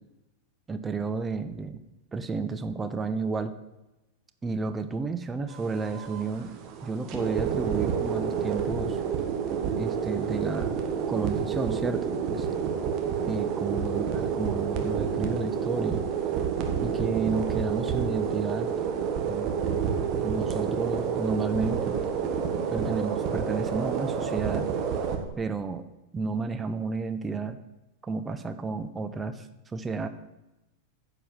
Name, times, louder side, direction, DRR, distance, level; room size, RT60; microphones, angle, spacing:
voice 1, 0.7-1.8 2.1-3.5 4.4-6.5 6.8-9.0 9.8-10.8 11.1-12.5 13.3-16.0 16.8-18.7 19.3-19.5 20.2-22.0 22.7-24.7 25.4-25.9 26.1-27.6 28.0-30.1, right 4 dB, 15° right, 8 dB, 0.6 m, -31 dB
sound 1, 5.5-25.2, right 7 dB, 35° right, 1.4 m, -29 dB
10.0 x 4.9 x 7.6 m, 0.97 s
figure-of-eight pair, 90°, 0 cm